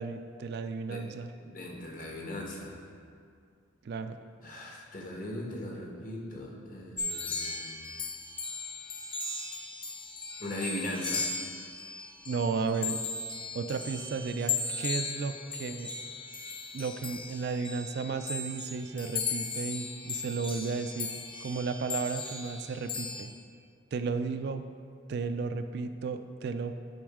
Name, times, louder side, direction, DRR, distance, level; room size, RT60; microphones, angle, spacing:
voice 1, 0.0-1.3 3.8-4.2 12.3-13.0 13.6-15.9 16.7-21.1 21.4-23.3 23.9-24.6 25.1-26.7, right 4 dB, 55° right, 9 dB, 0.3 m, -33 dB
voice 2, 1.4-2.8 4.4-7.9 10.4-11.3, left 1 dB, 40° left, -1 dB, 1.1 m, -39 dB
sound 1, 7.0-23.2, left 4 dB, 25° left, 0.6 m, -37 dB
9.4 x 3.9 x 4.9 m, 2.2 s
head